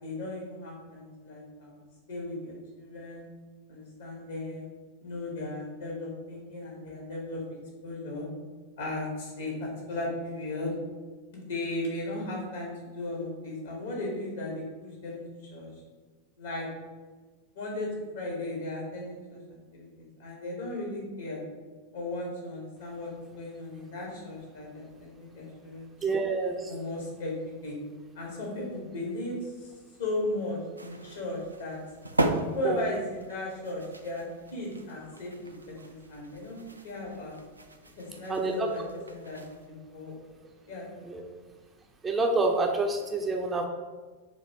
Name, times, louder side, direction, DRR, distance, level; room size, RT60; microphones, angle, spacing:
voice 1, 0.0-3.3 3.7-4.7 5.0-7.4 7.8-8.3 8.8-10.7 11.3-15.2 15.5-15.7 16.4-16.7 17.5-21.5 21.9-23.1 23.4-25.9 26.7-27.8 28.1-29.7 30.0-31.8 32.5-37.3 38.0-38.8 39.1-40.2 40.7-41.4, left 2 dB, 60° left, -2 dB, 1.5 m, -36 dB
voice 2, 26.0-26.7 32.6-32.8 38.3-38.7 41.1-41.2 42.0-43.7, right 3 dB, 15° right, 2 dB, 0.5 m, -27 dB
sound 1, 30.8-39.7, right 2 dB, 80° right, 0.3 m, -37 dB
4.0 x 2.8 x 4.3 m, 1.3 s
figure-of-eight pair, 90°, 0 cm